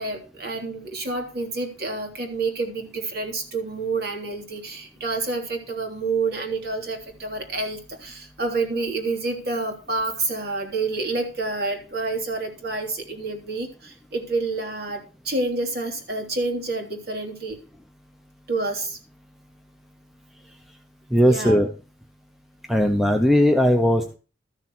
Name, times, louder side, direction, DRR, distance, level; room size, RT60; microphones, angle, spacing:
voice 1, 0.0-17.6 18.5-19.0 21.2-21.6, right 3 dB, 55° right, 4 dB, 3.2 m, -28 dB
voice 2, 21.1-21.7 22.7-24.2, equal, ahead, 4 dB, 0.9 m, -18 dB
13.5 x 6.8 x 6.1 m, 0.35 s
head